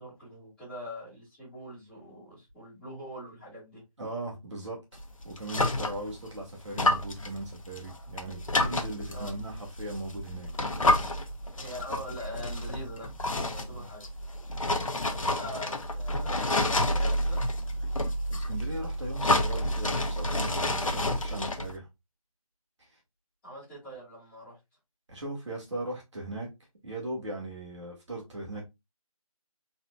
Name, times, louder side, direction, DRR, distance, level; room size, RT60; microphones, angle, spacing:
voice 1, 0.0-3.8 9.1-9.3 11.5-14.1 15.1-17.4 23.4-24.6, equal, 5° left, 2.8 m, -43 dB
voice 2, 4.0-4.8 5.2-10.5 13.7-13.9 18.3-21.9 25.1-26.5 26.8-28.7, right 1 dB, 50° right, 2.3 m, -38 dB
sound 1, 5.0-6.3 6.7-21.8, left 1 dB, 65° left, 0.9 m, -29 dB
4.2 x 4.1 x 2.5 m
figure-of-eight pair, 165°, 19 cm